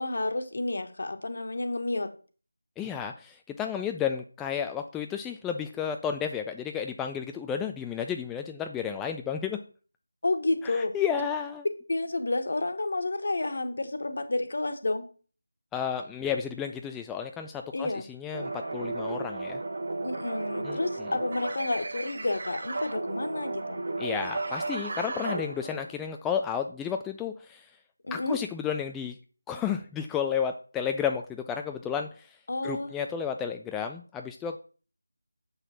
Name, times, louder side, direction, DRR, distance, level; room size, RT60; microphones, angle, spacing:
voice 1, 0.0-2.1 10.2-10.9 11.9-15.0 17.7-18.1 20.0-23.8 28.0-28.4 32.5-32.9, left 2 dB, 50° left, 8 dB, 1.5 m, -30 dB
voice 2, 2.8-9.6 10.6-11.7 15.7-19.6 20.6-21.1 24.0-27.7 28.1-29.2 29.5-32.4 32.6-34.6, left 7 dB, 5° left, 4 dB, 0.4 m, -32 dB
sound 1, 18.3-26.0, right 2 dB, 45° right, 1.4 m, -34 dB
7.9 x 5.9 x 6.0 m, 0.39 s
figure-of-eight pair, 165°, 0 cm